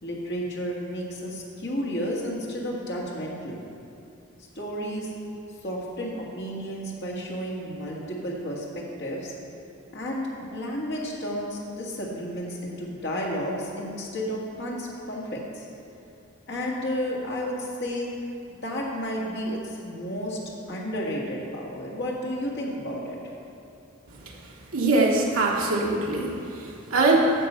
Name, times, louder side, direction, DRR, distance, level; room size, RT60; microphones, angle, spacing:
voice 1, 0.0-3.6 4.6-5.1 5.6-9.3 9.9-15.7 16.5-18.1 18.6-23.3, equal, 55° left, -3 dB, 1.8 m, -32 dB
voice 2, 24.7-26.4 26.6-27.3, right 2 dB, 65° right, -3 dB, 1.2 m, -22 dB
9.9 x 6.7 x 5.6 m, 2.7 s
head